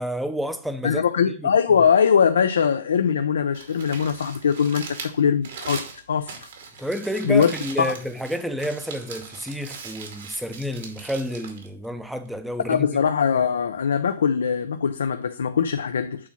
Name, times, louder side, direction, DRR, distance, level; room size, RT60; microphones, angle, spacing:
voice 1, 0.0-1.5 6.8-12.9, equal, ahead, 0.6 m, -30 dB
voice 2, 0.8-5.8 6.1-6.3 7.2-7.5 7.8-7.9 12.7-16.3, left 7 dB, 85° left, 0.5 m, -21 dB
Crumpling crinkling, 3.4-12.5, right 5 dB, 65° right, 2.0 m, -40 dB
8.4 x 2.8 x 5.8 m
hypercardioid pair, 145°, 0 cm